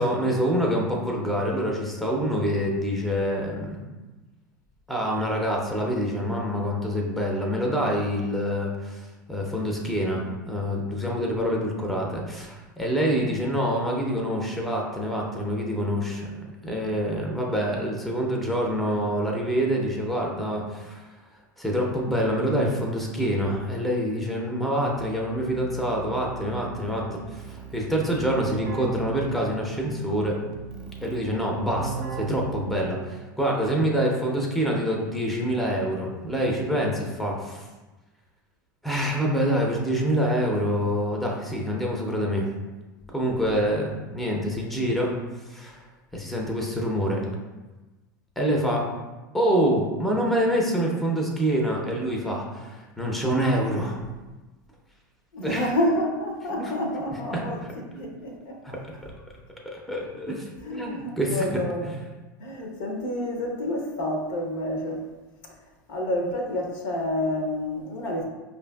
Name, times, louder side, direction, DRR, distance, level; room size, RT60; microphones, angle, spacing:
voice 1, 0.0-3.9 4.9-9.0 9.3-21.0 21.6-30.4 31.0-37.6 38.8-42.5 43.1-45.1 45.5-45.8 46.1-47.2 48.4-48.8 49.3-54.0 55.4-55.7 56.5-56.7 57.3-57.7 58.6-58.8 59.0-59.1 59.7-61.5 61.8-62.0, equal, ahead, -1 dB, 0.6 m, -26 dB
Keyboard (musical), 25.0-33.3, right 6 dB, 45° right, 0.6 m, -37 dB
voice 2, 55.3-57.6 57.9-58.6 60.6-61.9 62.4-65.1 65.9-68.2, left 1 dB, 60° left, 1 dB, 0.8 m, -29 dB
4.9 x 2.6 x 2.3 m, 1.2 s
hypercardioid pair, 85°, 11 cm